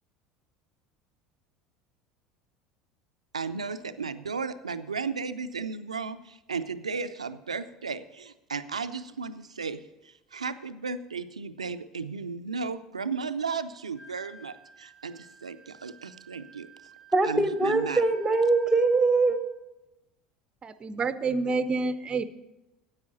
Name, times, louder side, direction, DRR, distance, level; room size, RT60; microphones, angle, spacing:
voice 1, 3.3-16.7 17.2-18.0, right 5 dB, 80° right, 12 dB, 0.5 m, -35 dB
Wind instrument woodwind instrument, 13.9-19.4, right 4 dB, 80° left, 5.0 m, -53 dB
voice 2, 17.1-19.4, right 3 dB, 5° right, 10 dB, 0.9 m, -22 dB
voice 3, 20.6-22.2, right 4 dB, 25° right, 13 dB, 0.6 m, -28 dB
9.7 x 8.6 x 6.6 m, 0.97 s
figure-of-eight pair, 70°, 3 cm